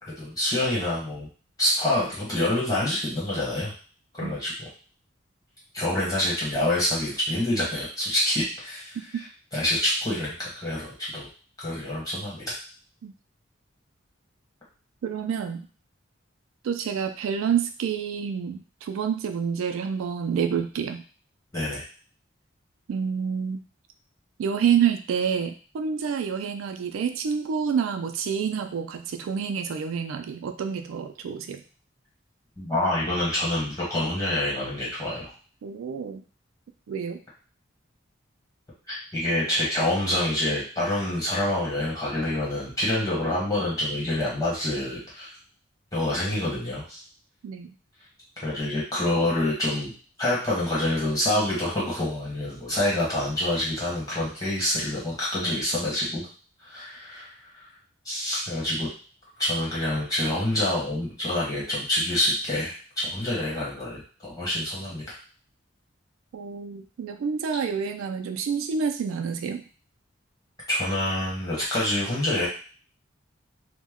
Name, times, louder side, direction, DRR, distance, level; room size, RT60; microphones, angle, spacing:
voice 1, 0.0-1.3 1.6-3.7 4.1-4.7 5.7-9.0 9.5-11.3 11.6-12.6 21.5-21.8 32.6-35.3 38.9-45.3 45.9-47.0 48.4-49.9 50.2-56.3 56.6-57.7 58.0-58.9 59.4-65.2 70.7-72.5, left 1 dB, 20° left, -7 dB, 1.1 m, -27 dB
voice 2, 15.0-15.7 16.6-21.0 22.9-23.6 24.4-31.6 35.6-36.2 36.9-37.2 47.4-47.7 66.3-69.6, right 7 dB, 85° right, 7 dB, 0.3 m, -28 dB
2.1 x 2.1 x 3.5 m, 0.39 s
head